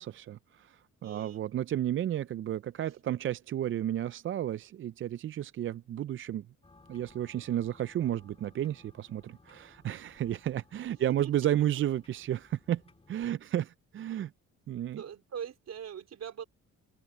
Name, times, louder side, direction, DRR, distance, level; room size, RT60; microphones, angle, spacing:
voice 1, 0.0-6.5 6.9-12.8 13.1-14.3 14.7-15.0, right 11 dB, 45° right, 0.4 m, -32 dB
voice 2, 1.0-1.4 10.9-11.0 11.2-11.3 15.0-16.4, right 8 dB, 60° right, 4.1 m, -41 dB
sound 1, 6.6-13.4, left 3 dB, 20° left, 2.4 m, -61 dB
open air
cardioid pair, 90°, 30 cm